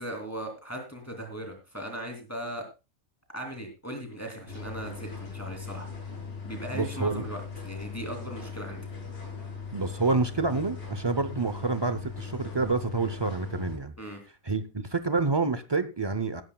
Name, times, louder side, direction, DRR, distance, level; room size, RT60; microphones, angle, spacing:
voice 1, 0.0-2.6 3.3-5.9 6.4-8.8 14.0-14.2, right 1 dB, 10° left, 2 dB, 3.0 m, -38 dB
sound 1, 4.5-13.8, left 5 dB, 50° left, 5.2 m, -39 dB
voice 2, 6.7-7.2 9.7-13.9 14.5-16.4, right 3 dB, 40° right, 11 dB, 0.4 m, -28 dB
18.5 x 11.0 x 2.3 m, 0.28 s
omnidirectional pair, 1.5 m